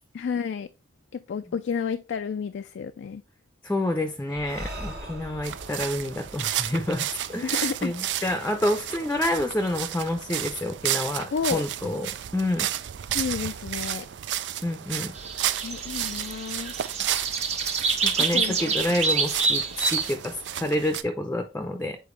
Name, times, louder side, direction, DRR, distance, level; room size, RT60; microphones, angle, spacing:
voice 1, 0.1-0.7 1.1-3.2 7.4-7.9 8.2-8.4 11.3-11.6 13.1-14.1 15.6-16.7 18.2-18.8, left 6 dB, 80° left, 0.3 m, -31 dB
voice 2, 3.6-12.7 14.6-15.1 18.0-19.6 19.9-22.0, left 1 dB, 10° left, 0.5 m, -28 dB
Breathing, 4.3-7.9, right 1 dB, 65° right, 1.5 m, -41 dB
sound 1, 5.4-21.0, right 11 dB, 90° right, 0.4 m, -32 dB
sound 2, 15.1-20.1, right 4 dB, 40° right, 0.9 m, -27 dB
7.0 x 4.4 x 3.1 m
head